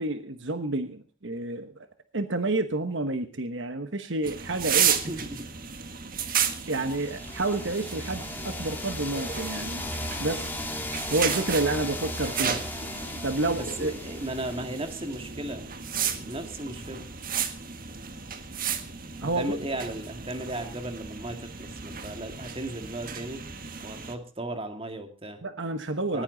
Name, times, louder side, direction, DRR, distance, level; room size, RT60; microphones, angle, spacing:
voice 1, 0.0-1.7 2.1-5.0 6.7-9.9 10.2-10.6 11.1-12.6 13.2-13.9 19.2-19.6 25.4-26.2, right 2 dB, 60° right, 9 dB, 1.2 m, -29 dB
sound 1, 4.2-24.1, right 7 dB, 45° right, 1.6 m, -33 dB
voice 2, 5.0-5.5 12.4-12.6 13.5-15.7 16.2-17.1 19.2-23.4 23.8-25.4 26.1-26.2, right 1 dB, 25° right, 7 dB, 2.2 m, -36 dB
sound 2, 6.5-15.3, left 1 dB, 10° left, 2.3 m, -37 dB
19.5 x 15.0 x 4.0 m, 0.35 s
head